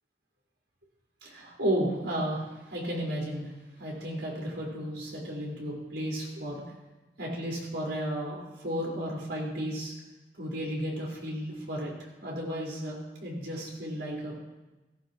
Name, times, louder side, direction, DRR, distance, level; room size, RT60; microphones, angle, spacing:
voice 1, 1.2-3.5 3.8-6.6 7.2-9.9 10.4-14.3, equal, 85° right, -3 dB, 4.7 m, -33 dB
17.0 x 16.0 x 3.1 m, 1.1 s
head